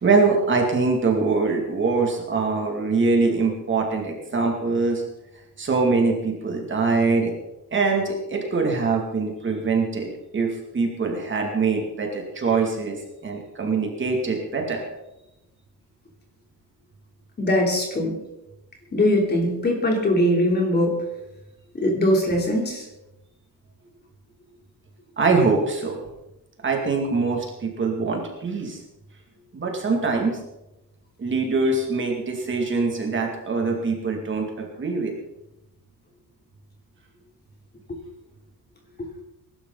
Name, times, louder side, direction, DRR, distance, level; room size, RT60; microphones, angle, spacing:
voice 1, 0.0-5.0 5.6-7.3 7.7-10.5 10.7-13.0 13.2-14.8 25.2-26.0 26.6-28.8 29.5-30.4 31.2-35.2, right 4 dB, 30° right, 1 dB, 2.4 m, -23 dB
voice 2, 17.4-18.1 18.9-21.0 21.7-22.9, left 1 dB, 25° left, 0 dB, 3.3 m, -21 dB
21.5 x 12.0 x 4.0 m, 0.93 s
cardioid pair, 175°, 37 cm